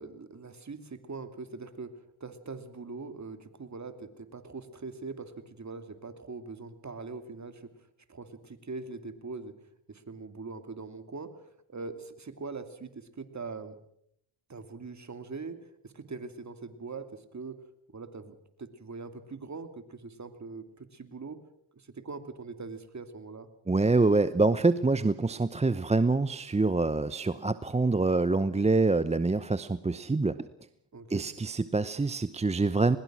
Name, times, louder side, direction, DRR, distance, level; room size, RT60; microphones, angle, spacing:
voice 1, 0.0-9.5 9.9-13.7 14.5-17.6 17.9-21.4 21.7-23.5 30.9-31.3, right 4 dB, 35° right, 9 dB, 2.7 m, -42 dB
voice 2, 23.7-30.4 31.1-33.0, right 3 dB, 15° right, 13 dB, 0.8 m, -25 dB
21.5 x 21.0 x 6.2 m, 0.72 s
supercardioid pair, 65°, 48 cm